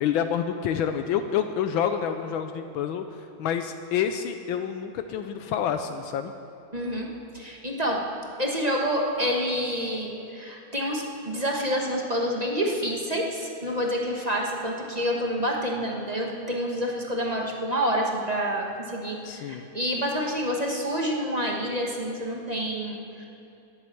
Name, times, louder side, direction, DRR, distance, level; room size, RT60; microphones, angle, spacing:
voice 1, 0.0-3.0 3.4-6.3 19.2-19.6, left 8 dB, 80° left, 7 dB, 1.4 m, -28 dB
voice 2, 6.7-7.1 7.3-8.0 8.4-23.3, equal, 25° right, -1 dB, 1.2 m, -28 dB
11.5 x 10.5 x 7.8 m, 2.8 s
omnidirectional pair, 2.2 m